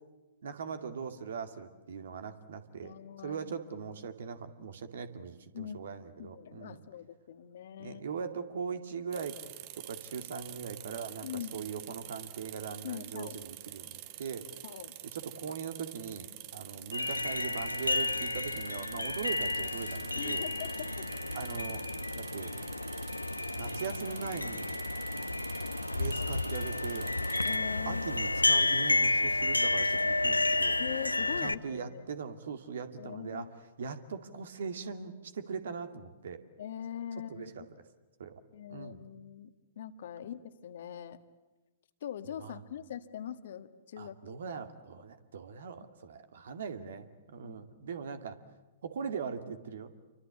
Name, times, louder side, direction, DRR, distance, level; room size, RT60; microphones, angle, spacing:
voice 1, 0.4-2.9 3.2-6.8 7.8-9.3 9.8-14.4 15.0-20.5 21.3-21.8 22.1-22.5 23.6-24.7 25.9-27.1 27.9-30.8 31.4-33.5 33.8-36.4 37.3-37.6 38.2-38.3 38.7-39.0 42.4-42.6 44.0-48.4 48.8-49.9, right 6 dB, 60° right, 9 dB, 2.3 m, -40 dB
voice 2, 2.8-3.6 5.5-5.8 6.2-8.0 11.2-11.7 12.8-13.4 14.6-14.9 20.2-21.1 27.4-28.0 30.8-32.1 33.0-33.5 33.8-33.9 36.6-37.7 38.5-41.2 42.0-44.6 47.4-47.6, left 9 dB, 55° left, 10 dB, 1.6 m, -42 dB
sound 1, 9.1-27.6, right 15 dB, 40° right, 1.1 m, -47 dB
sound 2, 16.9-31.5, left 2 dB, 85° left, 0.8 m, -31 dB
28.5 x 24.5 x 8.4 m, 1.1 s
figure-of-eight pair, 110°, 0 cm